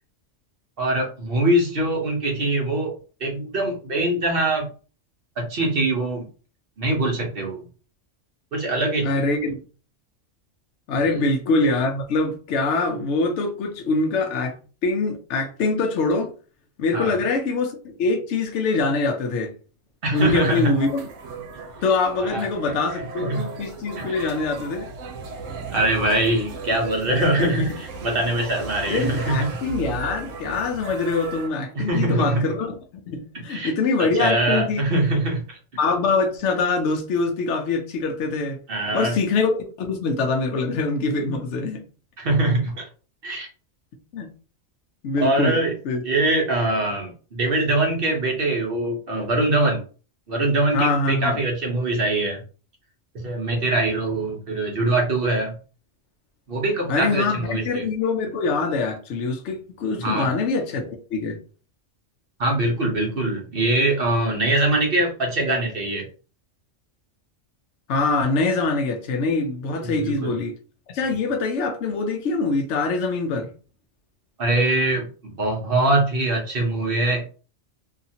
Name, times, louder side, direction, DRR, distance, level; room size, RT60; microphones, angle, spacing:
voice 1, 0.8-2.9 3.2-4.7 5.4-6.3 6.8-7.6 8.5-9.1 11.1-11.3 16.9-17.1 20.0-20.7 22.2-23.4 24.0-24.3 25.7-29.4 31.7-32.4 33.5-33.7 34.0-35.6 38.7-39.2 42.2-42.9 43.2-43.5 45.2-45.8 46.0-49.8 50.3-52.4 53.2-55.6 56.5-57.9 60.0-60.3 62.4-66.1 69.8-70.4 74.4-77.3, right 2 dB, 55° right, 0.9 m, -23 dB
voice 2, 9.0-9.6 10.9-14.5 14.8-16.3 16.8-19.5 20.1-21.0 21.8-24.9 27.4-27.8 28.9-32.7 33.1-35.0 35.8-38.6 38.9-41.8 44.1-44.3 45.0-45.6 45.8-46.0 50.7-51.4 56.9-61.4 67.9-70.6 70.9-73.5, left 3 dB, 70° left, 0.9 m, -24 dB
sound 1, 20.1-31.5, right 4 dB, 85° right, 1.0 m, -36 dB
2.8 x 2.5 x 2.7 m
omnidirectional pair, 1.3 m